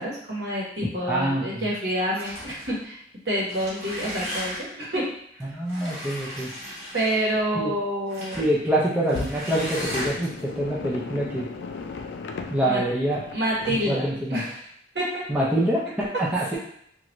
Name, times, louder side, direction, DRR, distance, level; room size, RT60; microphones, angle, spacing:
voice 1, 0.0-3.0 3.2-5.1 5.3-5.5 6.9-8.4 12.6-12.8 13.3-14.6 14.9-15.2, equal, 75° right, -5 dB, 1.2 m, -28 dB
voice 2, 1.1-1.7 5.5-6.5 7.5-7.7 8.4-11.5 12.5-13.2 13.7-14.4 15.3-16.6, right 1 dB, 5° right, -6 dB, 0.5 m, -25 dB
sound 1, 2.1-2.8 3.4-4.8 5.7-7.4 8.1-8.5 9.1-10.4, equal, 35° right, 1.1 m, -36 dB
sound 2, 9.1-13.9, left 4 dB, 80° left, 0.3 m, -36 dB
3.1 x 2.5 x 2.9 m, 0.70 s
head